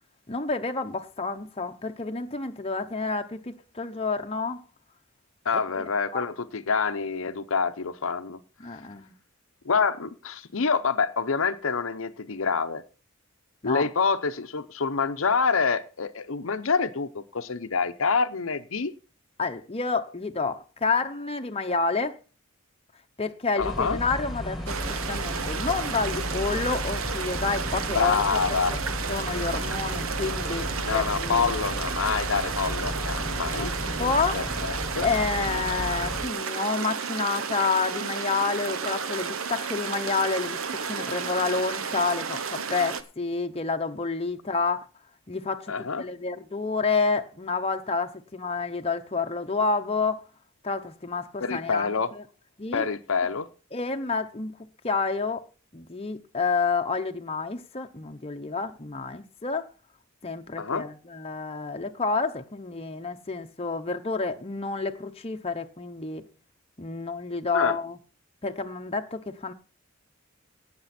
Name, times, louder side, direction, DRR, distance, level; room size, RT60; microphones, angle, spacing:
voice 1, 0.3-4.6 5.7-5.8 6.1-6.2 8.6-9.1 13.6-13.9 19.4-22.1 23.2-28.2 28.7-28.8 29.1-31.5 33.5-33.7 34.0-34.4 35.0-40.6 40.9-44.9 45.3-50.2 50.6-52.2 52.6-52.9 53.7-54.5 54.8-55.4 55.7-59.7 60.2-66.2 66.8-68.0 68.4-69.5, left 4 dB, 30° left, 0.8 m, -29 dB
voice 2, 5.4-8.4 9.6-12.8 13.6-18.9 23.6-24.0 27.9-28.8 30.8-33.7 34.0-35.1 45.7-46.1 51.4-52.1 52.7-53.5 60.6-60.8 67.5-67.8, left 5 dB, 70° left, 0.8 m, -27 dB
sound 1, 23.6-36.3, left 1 dB, ahead, 2.0 m, -34 dB
sound 2, 24.7-43.0, right 6 dB, 75° right, 1.0 m, -32 dB
Wind instrument woodwind instrument, 39.2-41.8, left 1 dB, 30° right, 1.5 m, -47 dB
18.0 x 6.9 x 4.3 m
head